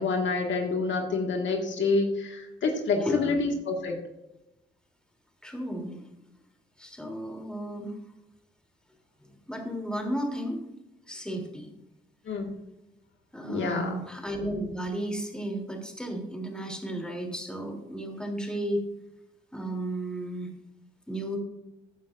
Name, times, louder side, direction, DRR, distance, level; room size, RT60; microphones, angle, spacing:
voice 1, 0.0-4.0 12.3-12.5 13.5-13.9, left 3 dB, 70° left, 2 dB, 1.9 m, -27 dB
voice 2, 2.9-3.4 5.4-6.0 6.8-8.0 9.2-10.6 11.1-11.7 13.3-18.8 19.5-20.5 21.1-21.4, right 1 dB, 5° left, 1 dB, 3.1 m, -33 dB
15.0 x 9.3 x 2.6 m, 0.93 s
supercardioid pair, 65°, 20 cm